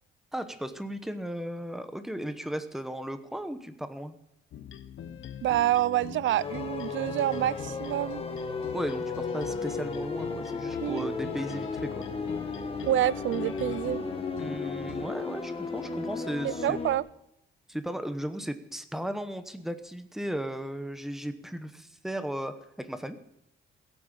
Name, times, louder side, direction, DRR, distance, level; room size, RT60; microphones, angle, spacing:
voice 1, 0.3-4.2 8.7-12.0 14.4-16.8 17.7-23.2, equal, ahead, 1.0 m, -36 dB
sound 1, 4.5-15.1, left 8 dB, 75° left, 1.1 m, -43 dB
voice 2, 5.4-8.2 10.8-11.1 12.8-14.0 16.4-17.0, right 13 dB, 70° right, 0.4 m, -27 dB
sound 2, 6.4-17.0, left 4 dB, 30° left, 1.6 m, -35 dB
16.0 x 8.8 x 7.4 m
wide cardioid pair, 175°, 20 cm